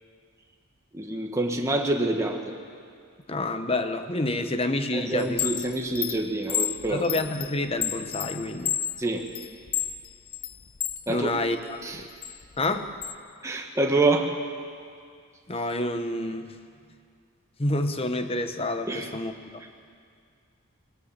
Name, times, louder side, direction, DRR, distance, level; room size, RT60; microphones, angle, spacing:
voice 1, 0.9-2.4 4.9-7.1 9.0-9.3 11.1-11.3 11.8-12.0 13.4-14.3 18.9-19.1, right 2 dB, 15° right, 1 dB, 1.4 m, -26 dB
voice 2, 3.3-5.5 6.9-8.8 11.1-12.1 12.6-12.9 15.5-16.6 17.6-19.6, left 2 dB, 25° left, 8 dB, 1.0 m, -28 dB
Chime, 5.2-11.0 11.5-13.2, left 11 dB, 45° left, 0.5 m, -31 dB
19.5 x 18.5 x 7.4 m, 2.2 s
head